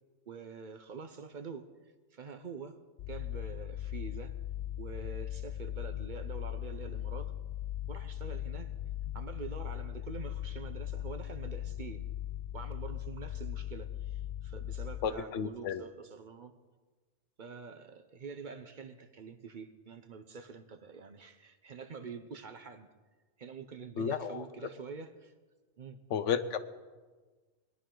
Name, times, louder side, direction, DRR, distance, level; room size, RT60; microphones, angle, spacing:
voice 1, 0.3-2.8 3.1-4.3 4.8-7.3 7.9-8.7 9.1-12.1 12.5-16.5 17.4-22.9 23.4-25.3 25.8-26.0, right 5 dB, 50° right, 8 dB, 0.7 m, -46 dB
sound 1, 3.0-15.1, left 12 dB, 65° left, 0.8 m, -39 dB
voice 2, 15.0-15.8 24.0-24.5 26.1-26.6, left 7 dB, 90° left, 11 dB, 1.1 m, -32 dB
21.0 x 10.5 x 3.8 m, 1.3 s
omnidirectional pair, 1.2 m